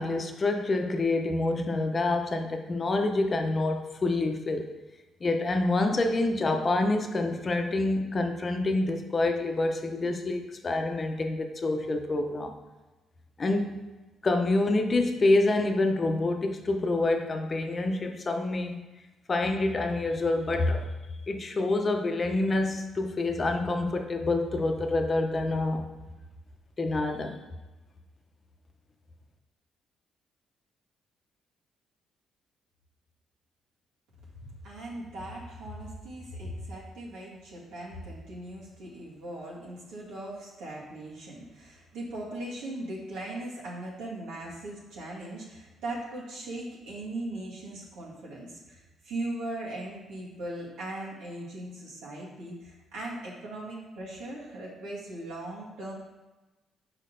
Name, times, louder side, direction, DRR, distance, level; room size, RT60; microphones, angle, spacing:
voice 1, 0.0-4.7 5.2-12.5 13.4-13.8 14.2-18.8 19.3-20.9 21.3-25.8 26.8-27.4, left 2 dB, 35° left, 5 dB, 0.8 m, -27 dB
voice 2, 34.6-55.9, right 1 dB, 90° right, -5 dB, 2.1 m, -39 dB
6.6 x 4.5 x 3.9 m, 1.1 s
cardioid pair, 90°, 0 cm